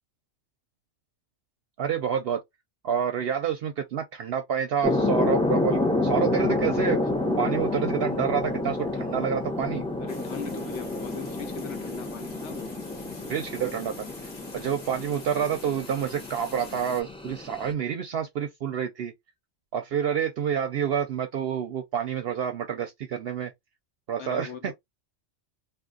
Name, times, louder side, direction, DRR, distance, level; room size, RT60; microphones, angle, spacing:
voice 1, 1.8-2.4 2.8-7.0 7.4-9.8 13.3-19.1 19.7-23.5 24.1-24.7, right 8 dB, 65° right, 0.7 m, -28 dB
sound 1, 4.8-17.7, left 2 dB, 10° left, 0.3 m, -29 dB
voice 2, 10.0-12.8 24.2-24.7, left 5 dB, 75° left, 1.1 m, -40 dB
sound 2, 10.1-17.0, left 3 dB, 40° left, 1.0 m, -46 dB
3.5 x 2.4 x 2.3 m
omnidirectional pair, 1.2 m